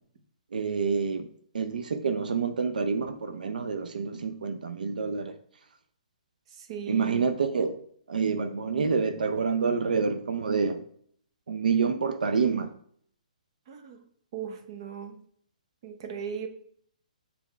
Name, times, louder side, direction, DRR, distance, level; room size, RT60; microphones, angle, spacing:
voice 1, 0.5-1.3 1.5-5.4 6.9-7.8 8.1-10.8 11.5-12.7, right 5 dB, 80° right, 0.6 m, -27 dB
voice 2, 6.6-7.3 13.7-14.0 14.3-15.2 15.8-16.5, right 7 dB, 40° right, 0.9 m, -38 dB
7.1 x 3.5 x 4.5 m
hypercardioid pair, 155°, 4 cm